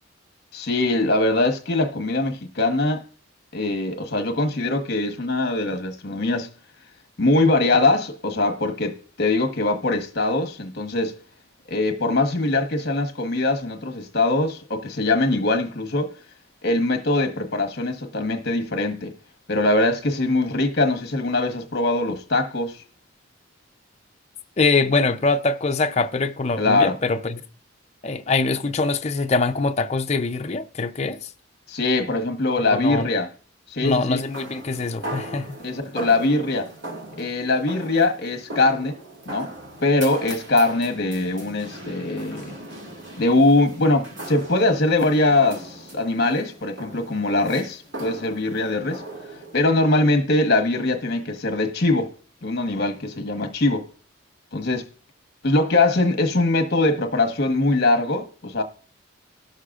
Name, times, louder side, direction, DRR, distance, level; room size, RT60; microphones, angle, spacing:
voice 1, 0.5-3.0 3.5-6.5 7.2-11.2 11.7-16.1 16.6-19.1 19.5-22.8 26.6-27.0 31.7-33.3 33.7-34.2 35.6-36.7 37.2-39.0 39.3-39.5 39.8-42.5 43.2-49.0 49.5-52.1 52.4-53.9 54.5-54.8 55.4-58.6, left 2 dB, 50° left, 1.1 m, -22 dB
voice 2, 24.6-27.4 28.0-31.3 32.7-33.1 33.8-35.6, left 3 dB, 35° left, 0.5 m, -23 dB
sound 1, 34.2-49.7, right 1 dB, 65° right, 2.1 m, -39 dB
19.0 x 6.5 x 2.4 m
head